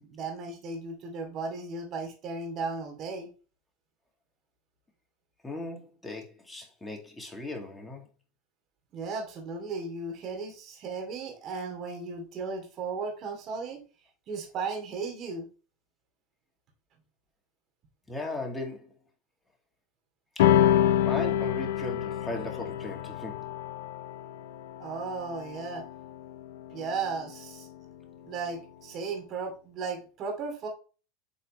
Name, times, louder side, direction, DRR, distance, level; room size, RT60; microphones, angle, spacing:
voice 1, 0.0-3.3 8.9-13.8 14.3-15.5 24.8-25.8 26.7-27.7 28.2-30.7, right 4 dB, 45° right, 2.4 m, -35 dB
voice 2, 5.4-8.1 18.1-19.0 20.4-20.6 21.0-23.5, left 2 dB, 10° left, 2.1 m, -37 dB
sound 1, 20.4-27.1, left 11 dB, 80° left, 0.6 m, -27 dB
8.1 x 4.2 x 3.1 m
supercardioid pair, 120°, 0 cm